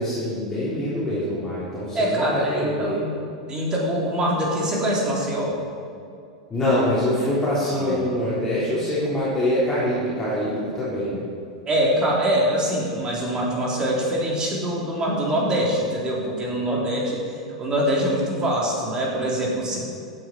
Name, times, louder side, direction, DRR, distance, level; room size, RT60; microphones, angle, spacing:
voice 1, 0.0-3.0 6.5-11.2, left 1 dB, 15° left, -10 dB, 3.4 m, -24 dB
voice 2, 1.9-3.2 3.5-5.6 7.7-8.1 11.7-19.8, equal, 25° right, -3 dB, 3.5 m, -24 dB
15.0 x 9.2 x 4.6 m, 2.4 s
figure-of-eight pair, 90°, 3 cm